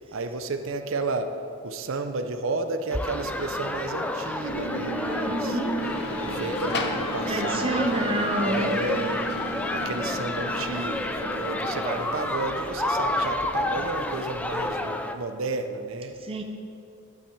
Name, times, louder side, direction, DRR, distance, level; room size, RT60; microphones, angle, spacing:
voice 1, 0.1-1.4 1.6-5.6 6.3-9.2 9.7-16.2, right 3 dB, 70° right, 8 dB, 0.6 m, -32 dB
sound 1, 2.9-15.1, left 1 dB, 5° left, 0.4 m, -30 dB
sound 2, 4.5-12.7, left 1 dB, 90° left, 1.5 m, -34 dB
voice 2, 5.3-5.8 7.2-8.7 16.2-16.4, right 2 dB, 25° right, 3 dB, 0.6 m, -28 dB
sound 3, 5.8-11.1, left 3 dB, 50° left, 0.8 m, -37 dB
11.5 x 7.9 x 4.5 m, 2.6 s
head